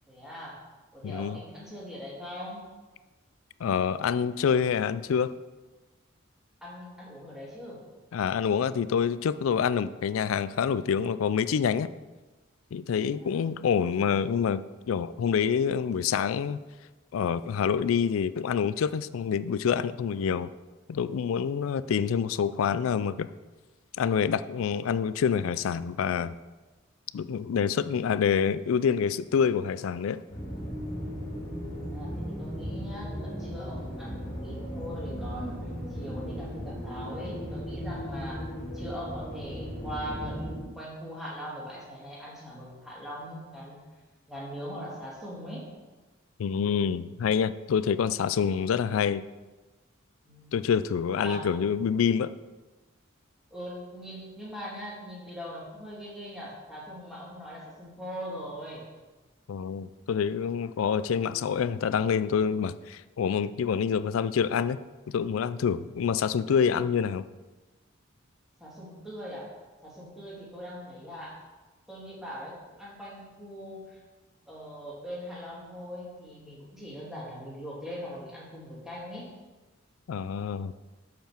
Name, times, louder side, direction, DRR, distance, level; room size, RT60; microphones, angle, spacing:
voice 1, 0.1-0.6 0.9-2.6 6.6-7.8 13.0-13.4 31.8-38.4 38.7-43.8 44.3-45.7 50.2-50.6 51.1-51.4 53.5-58.8 68.6-69.5 69.8-71.4 71.9-74.0 74.5-79.3, equal, ahead, -6 dB, 2.4 m, -41 dB
voice 2, 1.0-1.4 3.6-5.3 8.1-11.9 12.7-16.6 17.1-20.5 20.9-23.3 24.0-26.3 27.1-30.2 46.4-49.2 50.5-52.3 59.5-64.8 65.1-67.2 80.1-80.7, left 7 dB, 80° left, 15 dB, 0.3 m, -27 dB
sound 1, 30.3-40.6, equal, 45° left, 2.1 m, -36 dB
6.8 x 5.6 x 5.8 m, 1.2 s
head